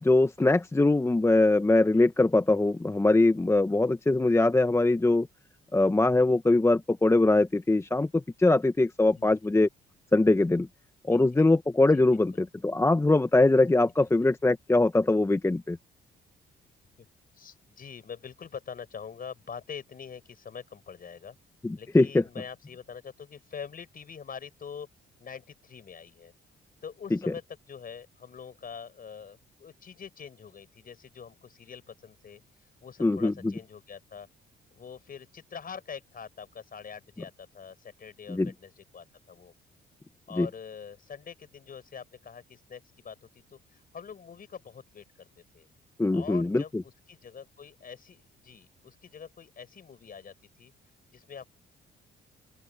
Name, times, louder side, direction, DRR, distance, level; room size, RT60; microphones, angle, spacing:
voice 1, 0.0-5.3 5.7-9.7 10.1-10.7 11.1-15.8 21.6-22.2 33.0-33.5 38.3-38.5 40.3-40.5 46.0-46.8, left 2 dB, 15° left, 0.9 m, -22 dB
voice 2, 11.1-11.4 11.9-12.2 14.0-14.1 17.0-17.1 17.3-21.4 21.8-24.9 25.2-26.3 26.8-32.4 32.8-34.3 34.7-39.5 40.3-45.3 45.5-45.7 46.1-50.7 51.1-51.5, left 7 dB, 45° left, 5.6 m, -44 dB
open air
cardioid pair, 90°, 20 cm